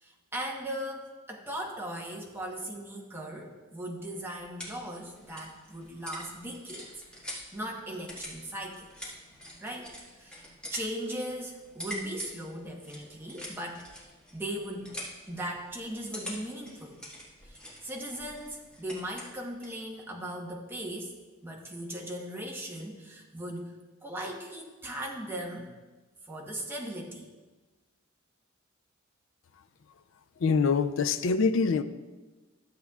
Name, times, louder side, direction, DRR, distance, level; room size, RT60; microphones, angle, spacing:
voice 1, 0.0-6.9 7.5-8.9 9.6-13.9 14.3-14.9 15.3-17.0 17.4-21.1 21.4-23.8 24.0-25.7 26.2-27.3, right 1 dB, 10° right, -1 dB, 1.0 m, -38 dB
sound 1, 4.0-19.8, equal, 5° left, 1.7 m, -46 dB
voice 2, 30.4-31.8, left 5 dB, 65° left, 12 dB, 0.4 m, -24 dB
12.5 x 7.4 x 2.3 m, 1.2 s
head